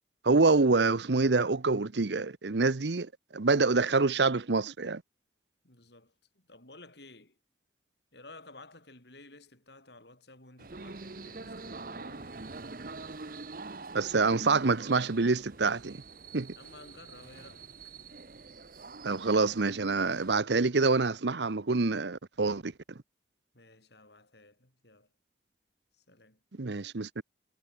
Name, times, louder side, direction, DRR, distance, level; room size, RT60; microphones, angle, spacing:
voice 1, 0.2-5.0 13.9-16.0 16.3-16.5 19.0-22.7 26.6-27.2, right 3 dB, 75° right, 0.9 m, -26 dB
voice 2, 5.6-7.4 8.1-12.4 16.6-17.8 23.5-25.1 25.9-26.4, left 2 dB, 70° left, 7.7 m, -54 dB
sound 1, 10.6-20.4, right 3 dB, 50° right, 1.1 m, -45 dB
head